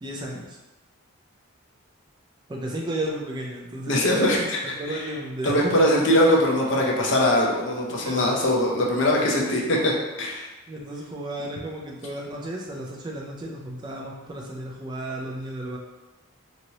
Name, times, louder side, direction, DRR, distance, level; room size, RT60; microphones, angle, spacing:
voice 1, 0.0-0.6 2.5-4.0 4.6-6.1 8.0-8.3 9.2-9.5 10.7-15.8, right 1 dB, 20° right, -2 dB, 0.3 m, -33 dB
voice 2, 3.9-5.0 5.4-9.9 10.2-10.5, left 1 dB, 55° left, -2 dB, 0.6 m, -22 dB
2.9 x 2.8 x 2.7 m, 1.1 s
head